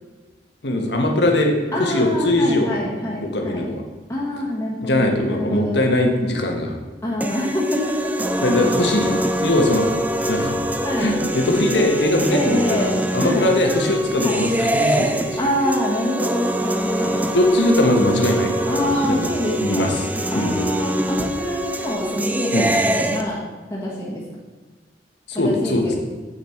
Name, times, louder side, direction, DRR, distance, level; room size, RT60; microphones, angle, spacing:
voice 1, 0.6-2.7 3.2-3.8 4.8-6.7 8.4-9.1 9.4-9.9 10.3-10.5 10.9-15.4 17.0-19.3 19.6-20.1 20.3-20.5 22.5-22.7 25.3-26.0, left 1 dB, 75° left, 2 dB, 1.4 m, -21 dB
voice 2, 1.7-3.6 4.1-5.8 7.0-7.8 10.8-11.1 12.3-12.9 13.2-13.5 14.2-14.4 15.4-17.2 18.7-19.9 20.3-23.4 23.7-24.2 25.3-26.0, left 1 dB, 15° left, -7 dB, 1.6 m, -25 dB
sound 1, 7.2-23.2, right 1 dB, 10° right, 0.4 m, -24 dB
8.1 x 6.9 x 4.5 m, 1.3 s
head